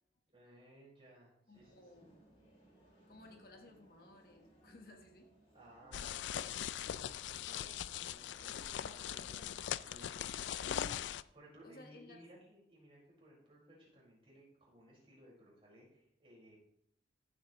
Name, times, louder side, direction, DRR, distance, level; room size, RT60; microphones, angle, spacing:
voice 1, 0.3-2.0 5.5-9.6 9.8-10.4 11.3-16.6, right 1 dB, 30° right, -5 dB, 5.0 m, -60 dB
voice 2, 1.5-2.2 3.1-5.4 8.7-9.6 10.6-11.2 11.6-12.2, left 1 dB, 55° left, 3 dB, 1.3 m, -57 dB
sound 1, 1.5-10.6, right 1 dB, 30° left, 3.3 m, -66 dB
sound 2, 5.9-11.2, left 10 dB, 80° left, 0.3 m, -41 dB
15.0 x 8.4 x 3.1 m, 0.75 s
head